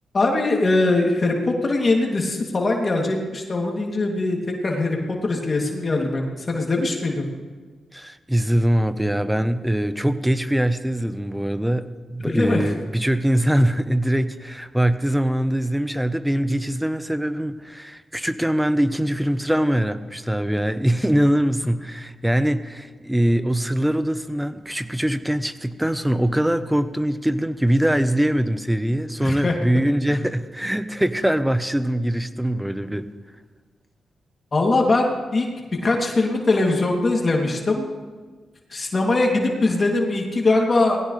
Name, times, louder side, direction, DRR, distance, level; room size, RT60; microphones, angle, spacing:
voice 1, 0.1-7.3 12.2-12.7 29.2-29.5 30.1-30.2 34.5-35.5 35.8-37.9 38.7-41.0, left 2 dB, 45° left, 0 dB, 3.0 m, -21 dB
voice 2, 7.9-33.1, right 1 dB, 5° right, 11 dB, 1.1 m, -22 dB
20.0 x 16.5 x 3.4 m, 1.4 s
supercardioid pair, 50°, 0 cm